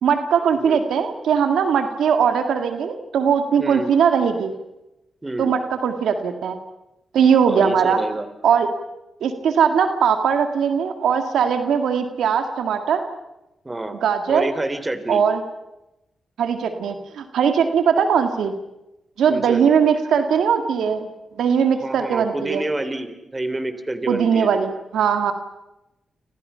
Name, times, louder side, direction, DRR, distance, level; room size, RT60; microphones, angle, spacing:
voice 1, 0.0-4.5 5.4-6.6 7.1-8.0 8.4-8.7 9.2-13.0 14.0-14.5 15.1-15.4 16.4-18.6 19.2-21.1 21.4-22.6 24.1-25.3, right 7 dB, 90° right, 7 dB, 2.0 m, -20 dB
voice 2, 3.6-3.9 5.2-5.5 7.5-8.3 13.7-14.0 14.3-15.2 19.3-19.7 21.8-24.7, right 2 dB, 25° right, 10 dB, 3.4 m, -28 dB
29.5 x 26.5 x 5.7 m, 0.94 s
cardioid pair, 65°, 0 cm